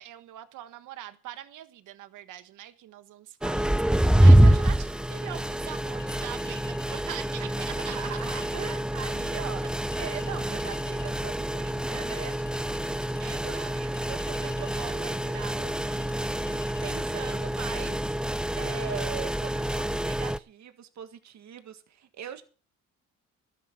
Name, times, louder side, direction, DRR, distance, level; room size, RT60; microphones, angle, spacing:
voice 1, 0.0-8.0 8.3-8.5 13.2-13.8 14.3-15.6 17.1-17.4, right 13 dB, 85° right, 1.4 m, -43 dB
sound 1, 3.4-20.4, right 1 dB, 5° right, 0.5 m, -26 dB
Chink clink, 6.0-7.0 7.8-8.6 9.9-11.2 12.1-13.2 13.9-15.0 15.9-17.0, left 8 dB, 40° left, 3.0 m, -51 dB
voice 2, 7.4-9.6 10.0-12.4 13.4-14.7 15.6-16.2 16.4-18.2 18.5-22.4, right 9 dB, 65° right, 1.8 m, -41 dB
13.0 x 10.0 x 5.9 m
cardioid pair, 90°, 30 cm